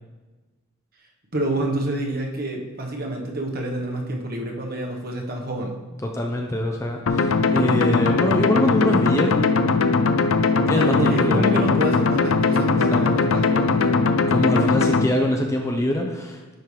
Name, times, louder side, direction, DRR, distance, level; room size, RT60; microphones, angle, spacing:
voice 1, 1.3-5.8 10.7-14.0, right 1 dB, 45° right, 1 dB, 1.1 m, -27 dB
voice 2, 6.0-9.5 10.7-11.6 12.9-13.0 14.3-16.5, left 1 dB, 15° left, 2 dB, 0.6 m, -24 dB
sound 1, 7.1-15.1, left 4 dB, 70° left, 0.5 m, -20 dB
10.5 x 5.4 x 3.2 m, 1.2 s
head